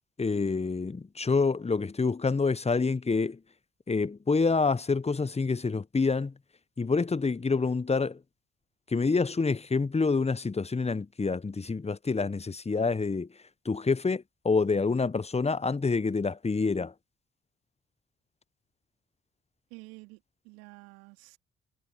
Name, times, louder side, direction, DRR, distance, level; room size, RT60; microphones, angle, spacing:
voice 1, 0.2-3.4 3.9-6.3 6.8-8.2 8.9-13.3 13.6-16.9, left 4 dB, 20° left, 0.9 m, -27 dB
voice 2, 19.7-21.4, right 27 dB, 80° right, 3.6 m, -50 dB
hypercardioid pair, 40°, 33 cm